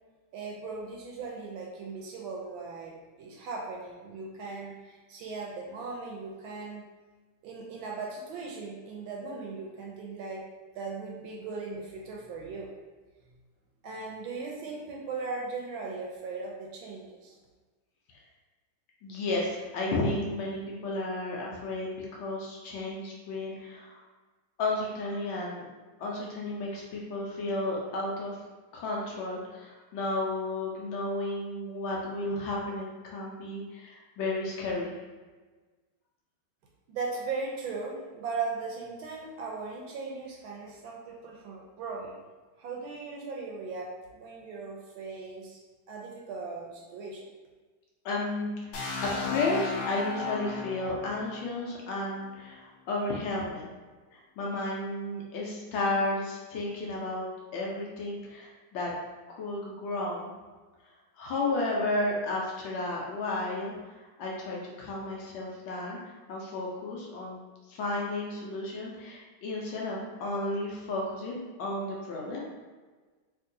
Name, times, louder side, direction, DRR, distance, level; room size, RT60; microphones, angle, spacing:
voice 1, 0.3-6.8 7.4-10.4 10.7-12.7 13.8-17.4 36.9-42.2 42.6-45.6 45.9-47.3, right 4 dB, 75° right, -1 dB, 1.2 m, -38 dB
voice 2, 19.0-24.0 24.6-25.7 26.0-28.3 28.7-34.9 48.0-53.7 54.1-58.9 59.3-60.3 61.2-67.4 67.7-72.4, left 2 dB, 70° left, -3 dB, 1.3 m, -33 dB
sound 1, 48.7-52.6, left 4 dB, 90° left, 0.8 m, -36 dB
3.5 x 2.9 x 2.6 m, 1.3 s
omnidirectional pair, 2.4 m